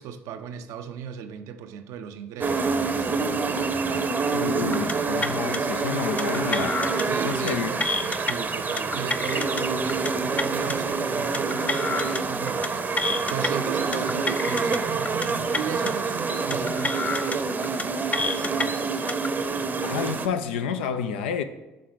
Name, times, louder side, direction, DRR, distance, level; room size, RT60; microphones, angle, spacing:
voice 1, 0.0-4.1 7.0-7.8 8.2-12.8 13.2-18.8, right 8 dB, 70° right, 0.5 m, -37 dB
sound 1, 2.4-20.3, right 4 dB, 30° right, 0.7 m, -27 dB
voice 2, 4.2-6.8 7.2-7.7 19.8-21.4, left 7 dB, 85° left, 0.4 m, -29 dB
sound 2, 4.7-4.9 5.2-5.6 6.2-7.0 7.3-7.5 7.8-8.3 8.8-9.6 9.9-10.1 10.4-10.8 11.3-12.2 12.5-12.7 13.0-13.5 13.9-14.8 15.1-15.3 15.5-15.9 16.5-17.4 17.6-17.8 18.1-18.7 19.1-19.3, left 3 dB, 25° left, 0.4 m, -29 dB
6.4 x 3.8 x 5.8 m
hypercardioid pair, 60°, 6 cm